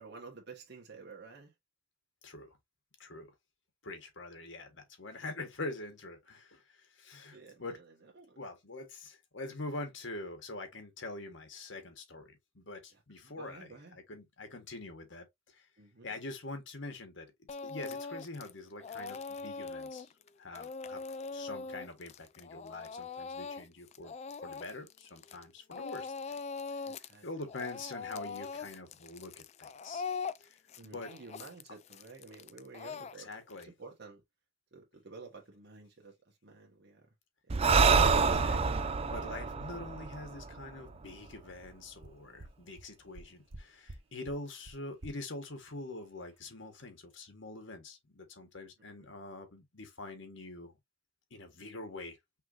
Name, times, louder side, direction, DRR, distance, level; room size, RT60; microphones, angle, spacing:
voice 1, 0.0-1.5 7.3-8.4 12.9-14.0 15.8-16.2 27.0-27.2 30.8-33.3 33.6-34.2 34.7-37.1 49.0-49.1, right 4 dB, 60° right, 1.4 m, -51 dB
voice 2, 2.2-2.6 3.0-3.3 3.8-7.8 8.4-15.7 16.0-17.3 17.6-20.1 20.4-21.0 21.3-24.1 24.4-26.1 27.2-30.1 30.4-30.6 30.8-31.1 33.1-33.7 38.3-38.8 39.1-50.7 51.3-52.2, left 2 dB, 70° left, 1.5 m, -44 dB
Speech / Crying sobbing, 17.5-18.5 18.8-25.4 25.7-27.1 27.4-33.6, left 4 dB, 35° left, 0.3 m, -41 dB
Breathing, 37.5-41.0, right 5 dB, 30° right, 0.4 m, -27 dB
sound 1, 41.3-41.4 41.7-41.8 42.0-42.1 42.4-42.5 42.8-42.9 43.1-43.6 43.9-44.0 44.3-44.4 44.7-44.8 45.0-45.1, right 2 dB, 85° right, 1.1 m, -47 dB
5.8 x 3.1 x 2.6 m
head